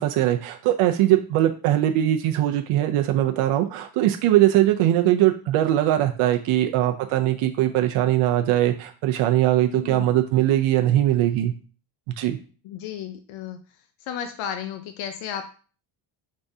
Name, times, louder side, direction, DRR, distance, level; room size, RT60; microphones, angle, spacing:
voice 1, 0.0-11.5 12.2-12.4, right 13 dB, 80° right, 4 dB, 0.6 m, -21 dB
voice 2, 9.7-10.1 12.6-13.6 14.0-15.5, left 9 dB, 75° left, 7 dB, 0.6 m, -33 dB
5.3 x 3.5 x 2.6 m, 0.39 s
cardioid pair, 150°, 49 cm